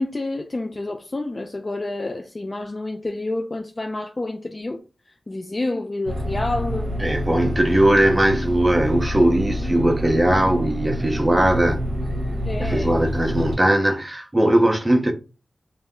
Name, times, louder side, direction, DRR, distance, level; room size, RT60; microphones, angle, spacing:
voice 1, 0.0-4.8 5.1-6.9 12.5-13.1, left 2 dB, 40° left, 0.4 m, -29 dB
sound 1, 6.1-13.6, equal, 75° right, 0.7 m, -27 dB
voice 2, 7.0-11.8 12.6-15.1, right 1 dB, 20° right, 0.6 m, -19 dB
2.1 x 2.0 x 3.6 m
cardioid pair, 45°, 0 cm